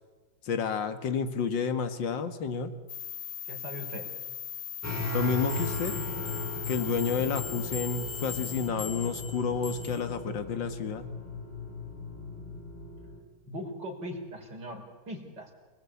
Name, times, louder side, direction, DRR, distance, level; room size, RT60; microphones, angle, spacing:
voice 1, 0.4-2.7 5.1-6.1 6.6-11.1, left 5 dB, 70° left, 9 dB, 2.3 m, -30 dB
sound 1, 2.9-8.7, left 9 dB, 50° left, 1.2 m, -39 dB
voice 2, 3.5-4.1 13.4-15.5, equal, 60° right, 2 dB, 5.1 m, -40 dB
sound 2, 4.8-13.2, left 3 dB, 5° left, 4.2 m, -37 dB
sound 3, 5.5-10.1, left 6 dB, 30° left, 6.2 m, -43 dB
27.5 x 20.0 x 8.5 m, 1.3 s
omnidirectional pair, 2.2 m